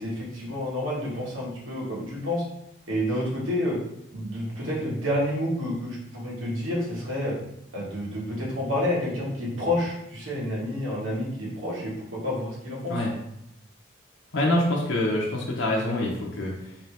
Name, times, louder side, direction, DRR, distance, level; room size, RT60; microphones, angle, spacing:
voice 1, 0.0-2.4 2.9-3.8 4.1-7.4 7.7-12.9, left 1 dB, 90° right, -5 dB, 1.5 m, -29 dB
voice 2, 14.3-16.8, left 1 dB, 75° left, -3 dB, 0.7 m, -25 dB
4.2 x 2.7 x 3.3 m, 0.80 s
head